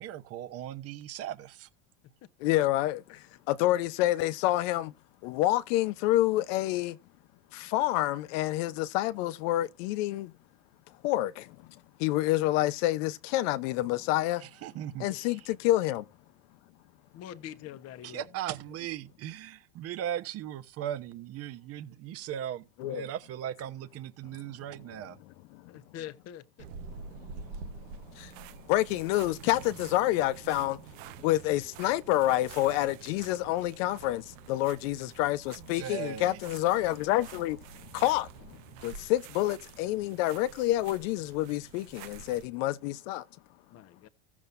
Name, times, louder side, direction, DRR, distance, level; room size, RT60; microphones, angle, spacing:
voice 1, 0.0-1.7 14.4-15.5 18.0-25.2 35.6-36.4, right 11 dB, 40° right, 1.0 m, -38 dB
voice 2, 2.4-3.2 3.5-4.9 5.2-7.0 7.5-10.3 11.0-11.5 12.0-14.4 15.0-16.0 22.8-23.1 28.2-28.3 28.7-30.8 31.2-37.6 37.9-38.6 38.8-43.2, left 15 dB, 75° left, 0.9 m, -28 dB
voice 3, 17.1-18.2 25.6-26.4 43.7-44.1, left 11 dB, 40° left, 1.1 m, -44 dB
sound 1, 26.6-42.5, right 6 dB, 80° right, 1.2 m, -48 dB
15.5 x 7.2 x 2.6 m
cardioid pair, 155°, 38 cm